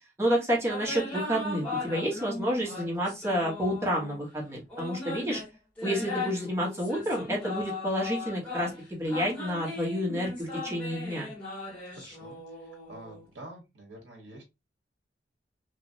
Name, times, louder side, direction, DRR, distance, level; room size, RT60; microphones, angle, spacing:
voice 1, 0.2-5.4 5.8-11.3, equal, 15° right, -3 dB, 1.1 m, -29 dB
sound 1, 0.7-4.2 4.7-13.2, left 3 dB, 10° left, 1.7 m, -38 dB
voice 2, 11.9-14.4, right 1 dB, 70° right, 1 dB, 0.9 m, -48 dB
3.0 x 2.5 x 2.5 m, 0.23 s
head